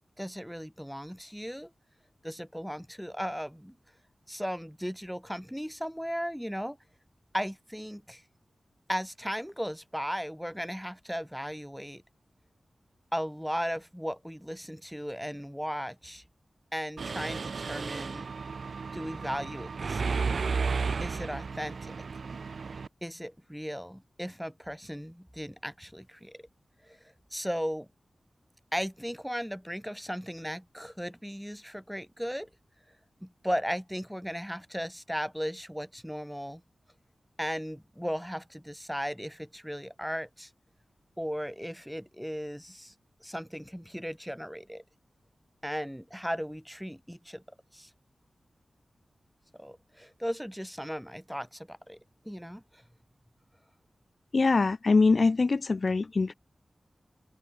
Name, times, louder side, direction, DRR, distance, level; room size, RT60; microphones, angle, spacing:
voice 1, 0.2-1.7 2.2-3.8 4.3-6.8 7.3-8.2 8.9-12.0 13.1-16.2 16.7-18.3 18.9-20.4 21.0-21.9 23.0-26.4 26.8-27.0 27.3-27.9 28.7-32.5 33.2-36.6 37.4-40.5 41.2-42.9 43.2-44.8 45.6-47.4 47.7-47.9 49.6-52.0 52.2-52.8, equal, ahead, 4.0 m, -36 dB
Mechanisms, 17.0-22.9, right 5 dB, 75° right, 0.5 m, -33 dB
voice 2, 54.3-56.3, left 3 dB, 55° left, 1.0 m, -23 dB
wide cardioid pair, 70°, 0 cm